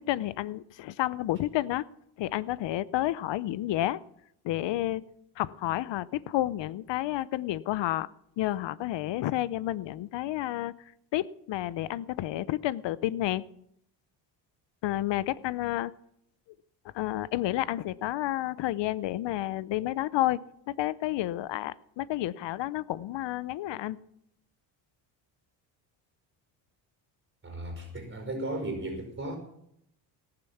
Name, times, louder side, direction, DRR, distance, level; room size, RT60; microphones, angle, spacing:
voice 1, 0.0-1.8 2.2-4.0 4.4-5.0 5.4-8.1 8.4-10.7 11.1-13.4 14.8-15.9 16.9-20.4 20.7-24.0, left 14 dB, 65° left, 19 dB, 0.7 m, -30 dB
voice 2, 27.4-29.4, right 1 dB, 25° right, 4 dB, 4.9 m, -35 dB
18.0 x 6.9 x 7.1 m, 0.74 s
cardioid pair, 85°, 47 cm